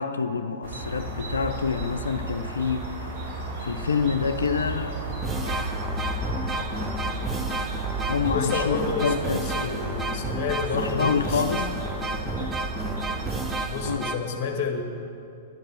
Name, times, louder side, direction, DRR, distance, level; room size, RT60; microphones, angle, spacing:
voice 1, 0.0-2.9 3.6-5.1 5.4-5.7 8.1-10.3 10.7-11.7 12.4-12.5 13.9-14.0, left 5 dB, 75° left, 9 dB, 0.6 m, -27 dB
sound 1, 0.6-13.6, right 2 dB, 45° right, 2.8 m, -33 dB
sound 2, 4.5-4.6 5.1-14.2, right 2 dB, 10° right, 0.8 m, -31 dB
voice 2, 8.3-9.7 10.1-11.4 13.7-14.8, left 5 dB, 40° left, 4 dB, 1.7 m, -29 dB
10.5 x 10.5 x 6.2 m, 2.6 s
figure-of-eight pair, 100°, 0 cm